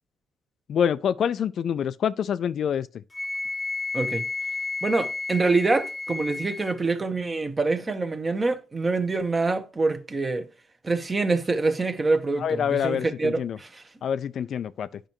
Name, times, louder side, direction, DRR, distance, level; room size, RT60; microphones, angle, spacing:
voice 1, 0.7-3.0 12.4-13.6 14.0-15.0, left 8 dB, 65° left, 0.3 m, -26 dB
Wind instrument woodwind instrument, 3.1-6.8, left 3 dB, 20° left, 0.7 m, -32 dB
voice 2, 3.9-4.2 4.8-10.5 10.8-13.8, right 3 dB, 25° right, 1.0 m, -25 dB
8.9 x 5.4 x 3.0 m
cardioid pair, 90°, 0 cm